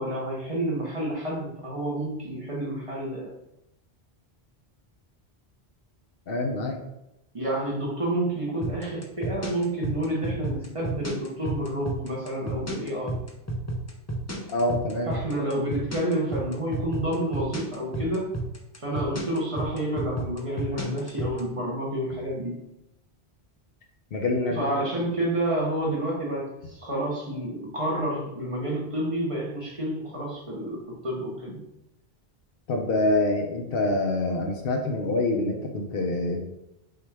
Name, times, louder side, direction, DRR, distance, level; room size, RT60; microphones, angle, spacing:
voice 1, 0.0-3.3 7.3-13.2 15.1-18.3 18.8-22.6 24.5-31.6, right 1 dB, 30° right, -3 dB, 1.0 m, -29 dB
voice 2, 6.3-6.7 14.5-15.1 24.1-24.6 32.7-36.5, left 2 dB, 65° left, 2 dB, 0.8 m, -26 dB
sound 1, 8.6-21.4, right 1 dB, 20° left, 0.4 m, -31 dB
5.7 x 2.4 x 3.3 m, 0.87 s
omnidirectional pair, 1.1 m